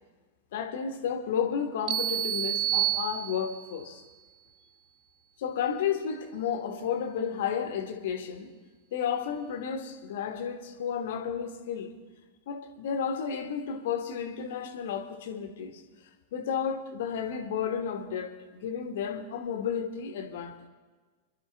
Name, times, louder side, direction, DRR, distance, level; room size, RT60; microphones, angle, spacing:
voice 1, 0.5-4.0 5.4-8.5 8.9-11.9 12.5-15.8 16.3-20.6, left 7 dB, 55° left, 1.5 m, -32 dB
sound 1, 1.9-3.7, right 13 dB, 35° right, 0.6 m, -29 dB
27.0 x 12.0 x 3.5 m
figure-of-eight pair, 90°, 0 cm